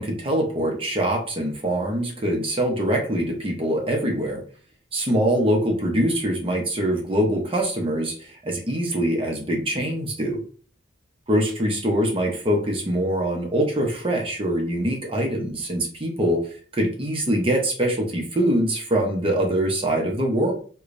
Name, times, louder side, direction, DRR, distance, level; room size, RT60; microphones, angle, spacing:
voice 1, 0.0-4.4 4.9-10.4 11.3-16.5 16.7-20.5, right 1 dB, 30° right, 1 dB, 0.8 m, -23 dB
4.8 x 2.3 x 2.6 m, 0.43 s
head